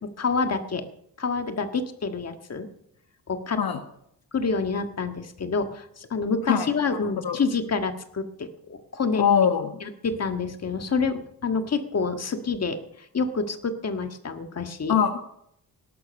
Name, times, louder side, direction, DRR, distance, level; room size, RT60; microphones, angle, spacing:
voice 1, 0.0-0.8 1.2-2.7 3.3-3.6 4.3-9.2 9.8-15.0, left 4 dB, 40° left, 7 dB, 1.7 m, -28 dB
voice 2, 9.2-9.7 14.9-15.2, left 8 dB, 65° left, 6 dB, 1.4 m, -21 dB
17.5 x 11.5 x 6.5 m, 0.72 s
wide cardioid pair, 130°, 38 cm